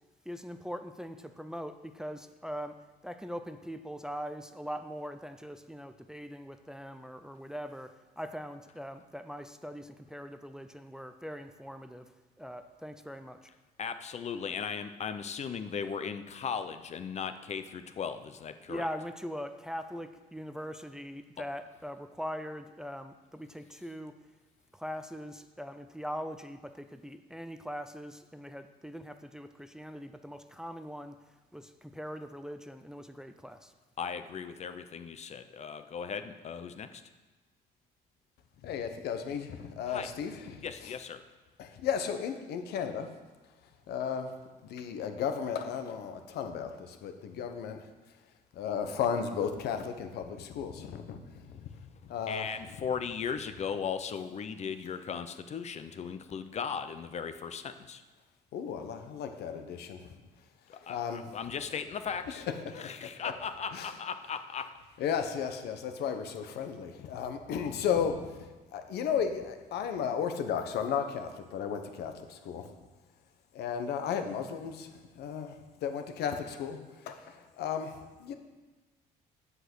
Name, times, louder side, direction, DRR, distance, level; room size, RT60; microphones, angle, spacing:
voice 1, 0.3-12.1 12.4-13.5 18.7-24.2 24.7-31.2 31.5-33.7, equal, 5° right, 9 dB, 0.5 m, -41 dB
voice 2, 13.8-18.9 34.0-37.0 39.9-40.1 40.6-41.2 52.3-58.0 60.7-62.4 62.8-64.7, left 6 dB, 40° left, 10 dB, 0.7 m, -37 dB
voice 3, 38.6-40.9 41.6-43.1 43.9-44.3 44.7-47.9 48.5-51.7 52.1-52.6 58.5-60.0 60.7-61.3 62.3-63.3 63.7-63.9 65.0-68.5 68.7-72.7 73.5-74.9 75.2-78.3, left 7 dB, 75° left, 7 dB, 1.1 m, -34 dB
8.2 x 7.8 x 6.2 m, 1.2 s
cardioid pair, 110°, 17 cm